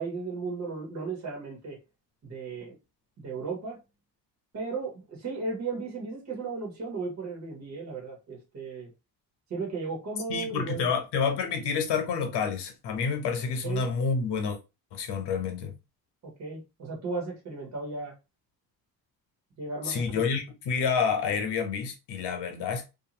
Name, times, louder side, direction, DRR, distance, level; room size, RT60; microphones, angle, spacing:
voice 1, 0.0-1.8 2.2-2.8 3.2-3.8 4.5-8.9 9.5-10.9 13.6-13.9 16.2-18.1 19.6-20.2, right 4 dB, 45° right, 1.2 m, -35 dB
voice 2, 10.3-14.6 14.9-15.7 19.8-22.8, left 5 dB, 90° left, 0.9 m, -28 dB
2.6 x 2.4 x 2.8 m
cardioid pair, 145°, 39 cm